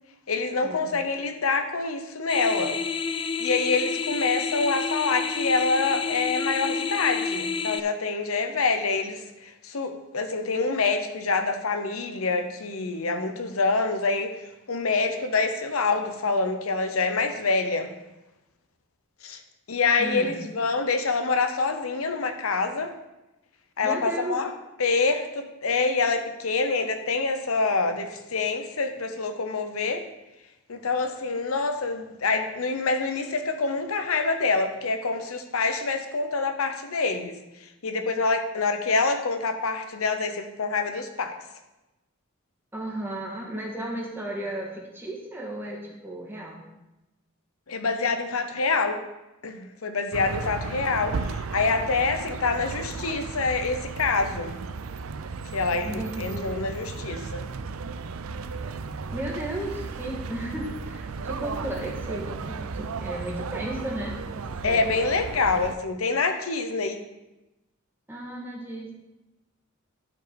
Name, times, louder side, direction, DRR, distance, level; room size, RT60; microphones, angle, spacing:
voice 1, 0.3-2.8 3.4-17.9 19.2-19.4 19.7-22.9 23.8-24.5 24.8-30.0 30.7-37.4 37.8-41.3 47.7-49.0 49.4-54.5 55.5-57.5 64.6-67.0, left 4 dB, 85° left, 7 dB, 0.9 m, -26 dB
sound 1, 2.3-7.8, left 5 dB, 25° left, 0.3 m, -29 dB
voice 2, 20.0-20.5 23.8-24.4 42.7-46.7 50.2-50.5 55.8-56.5 59.1-65.0 68.1-68.9, right 1 dB, 10° right, -2 dB, 1.7 m, -34 dB
sound 2, 50.1-65.8, right 4 dB, 80° right, 0.5 m, -35 dB
12.0 x 4.9 x 5.2 m, 0.98 s
head